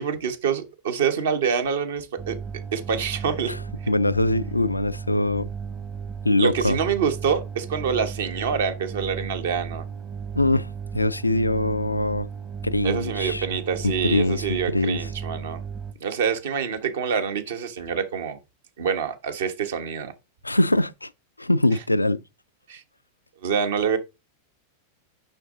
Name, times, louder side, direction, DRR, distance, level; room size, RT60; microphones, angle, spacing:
voice 1, 0.0-2.3 2.7-3.5 6.4-9.8 12.8-15.6 16.0-18.4 18.8-20.1 22.7-22.8 23.4-24.0, right 7 dB, 60° right, 1.2 m, -26 dB
sound 1, 2.2-15.9, right 6 dB, 25° right, 0.9 m, -35 dB
voice 2, 3.9-5.5 6.2-6.8 10.4-12.3 12.6-13.6 13.8-15.1 20.4-21.1 21.4-22.2, left 2 dB, 85° left, 0.3 m, -23 dB
6.5 x 5.8 x 3.8 m
figure-of-eight pair, 90°, 0 cm